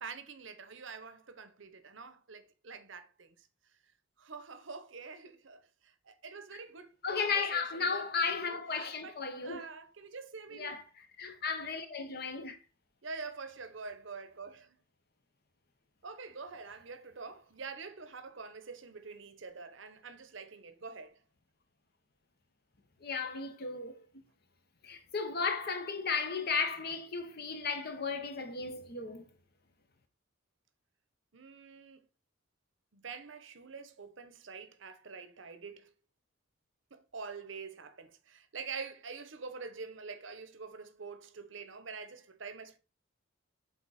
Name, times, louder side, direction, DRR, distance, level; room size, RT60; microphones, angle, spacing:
voice 1, 0.0-3.5 4.2-9.2 9.4-10.7 13.0-14.8 16.0-21.2 31.3-32.1 32.9-35.9 36.9-42.8, right 4 dB, 65° right, 0.8 m, -46 dB
voice 2, 7.0-9.7 10.5-10.8 11.2-12.6 23.0-24.0 24.8-29.2, left 5 dB, 50° left, 1.0 m, -34 dB
7.3 x 4.2 x 4.1 m
head